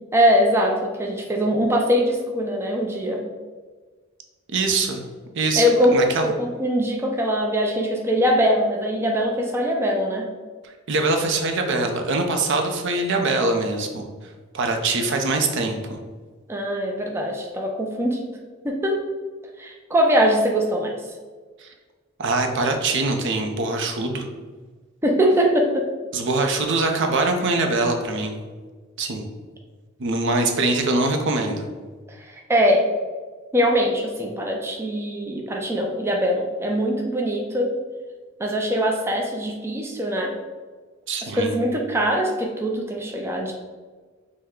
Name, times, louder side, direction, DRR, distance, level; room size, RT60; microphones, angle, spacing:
voice 1, 0.1-3.3 5.6-6.0 6.2-10.3 16.5-18.2 18.6-19.1 19.6-21.0 25.0-25.9 32.1-32.9 33.5-37.8 38.4-40.3 41.3-43.5, equal, 10° right, 0 dB, 0.4 m, -22 dB
voice 2, 4.5-5.0 5.3-6.3 10.6-14.1 14.5-16.0 21.6-21.7 22.2-24.3 26.1-28.4 29.0-29.2 30.0-31.6 41.1-41.5, right 3 dB, 60° right, 4 dB, 0.6 m, -23 dB
5.5 x 2.1 x 3.6 m, 1.4 s
head